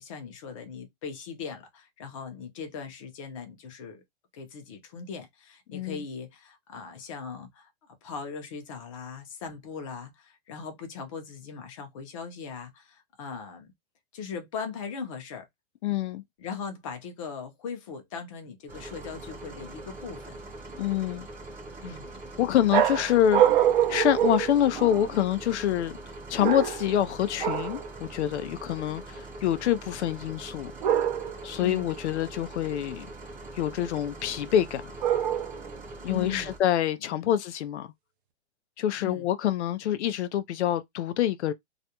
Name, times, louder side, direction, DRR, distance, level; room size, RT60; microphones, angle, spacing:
voice 1, 0.0-4.0 4.3-13.7 14.1-15.4 16.4-20.4 21.8-22.1 31.6-31.9 36.1-36.5 37.0-37.3 39.0-39.3, left 6 dB, 30° left, 0.6 m, -39 dB
voice 2, 5.7-6.0 15.8-16.2 20.8-21.3 22.4-23.4 23.9-25.9 26.3-30.7 31.4-33.1 33.5-34.8 36.0-37.9 38.8-41.5, left 11 dB, 85° left, 0.5 m, -26 dB
sound 1, 18.7-36.6, right 2 dB, 5° right, 0.7 m, -43 dB
sound 2, 22.7-25.2 26.4-27.0 27.4-27.9 30.8-31.5 35.0-35.7, right 10 dB, 50° right, 0.5 m, -25 dB
2.4 x 2.2 x 2.8 m
hypercardioid pair, 170°, 33 cm